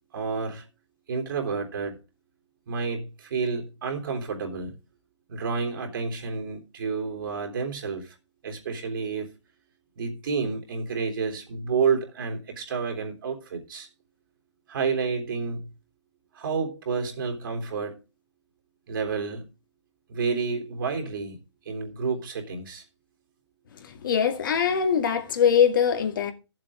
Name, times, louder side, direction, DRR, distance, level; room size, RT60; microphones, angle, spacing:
voice 1, 0.1-0.7 1.1-2.0 2.7-4.7 5.3-8.1 8.4-9.3 10.0-13.9 14.7-15.7 16.3-18.0 18.9-19.5 20.1-21.4 21.6-22.8, right 5 dB, 50° right, 3.5 m, -30 dB
voice 2, 24.0-26.3, left 7 dB, 45° left, 2.2 m, -22 dB
14.0 x 7.7 x 5.0 m
hypercardioid pair, 170°, 15 cm